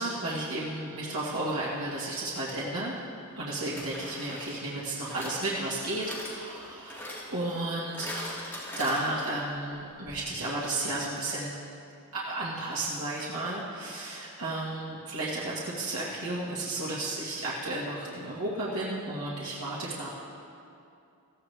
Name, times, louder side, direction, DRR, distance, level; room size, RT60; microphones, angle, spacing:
voice 1, 0.0-2.9 3.4-8.5 8.8-11.6 12.1-20.1, right 2 dB, 85° right, -7 dB, 1.9 m, -33 dB
sound 1, 2.5-2.6 3.8-9.5 9.8-9.9 10.1-10.2, left 1 dB, 10° left, 2.7 m, -42 dB
15.5 x 15.0 x 3.4 m, 2.5 s
head